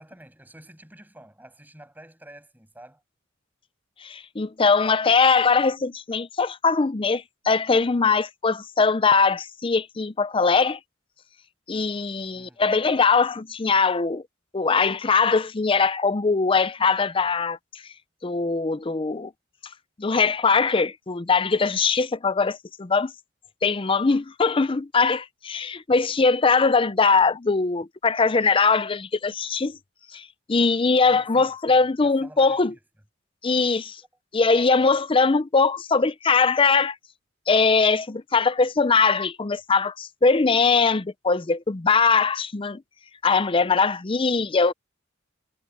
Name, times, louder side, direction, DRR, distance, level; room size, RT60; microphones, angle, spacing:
voice 1, 0.0-3.0 12.3-12.6 12.9-13.0 31.0-32.8, right 1 dB, 10° right, 6.7 m, -48 dB
voice 2, 4.0-10.8 11.7-14.2 14.5-17.6 18.2-19.3 20.0-23.1 23.6-29.8 30.1-30.2 30.5-32.7 33.4-34.0 34.3-36.9 37.5-42.8 43.2-44.7, left 4 dB, 25° left, 0.5 m, -21 dB
head